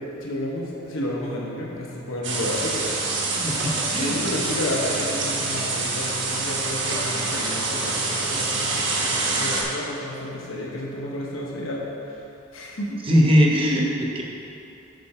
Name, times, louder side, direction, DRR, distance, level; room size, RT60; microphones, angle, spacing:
voice 1, 0.2-3.0 4.0-11.8 12.5-13.0, left 1 dB, 75° left, -3 dB, 1.1 m, -31 dB
sound 1, 2.2-9.6, right 3 dB, 60° right, 1.2 m, -26 dB
voice 2, 3.4-4.2 13.1-14.2, equal, 25° right, -1 dB, 0.9 m, -20 dB
8.5 x 5.8 x 4.3 m, 2.9 s
head